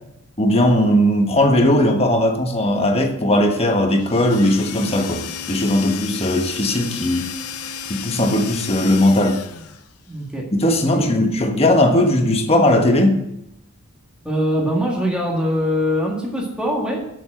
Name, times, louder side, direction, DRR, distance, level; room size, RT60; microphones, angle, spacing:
voice 1, 0.4-7.3 7.9-9.4 10.5-13.2, left 1 dB, 25° left, 3 dB, 1.3 m, -18 dB
sound 1, 4.0-9.9, left 7 dB, 85° left, 0.7 m, -33 dB
voice 2, 10.1-10.5 10.9-11.2 14.2-17.0, equal, 5° right, -2 dB, 1.8 m, -22 dB
7.2 x 7.1 x 7.7 m, 0.82 s
head